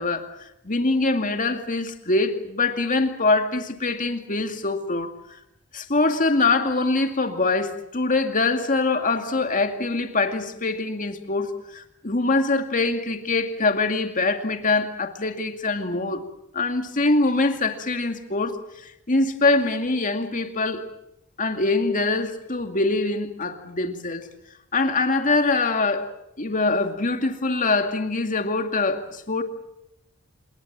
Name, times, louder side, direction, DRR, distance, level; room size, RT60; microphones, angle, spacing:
voice 1, 0.0-5.4 5.7-16.2 16.5-18.6 19.1-20.8 21.4-24.3 24.7-26.1 26.4-29.4, left 3 dB, 40° left, 2.3 m, -23 dB
26.5 x 22.0 x 7.5 m
head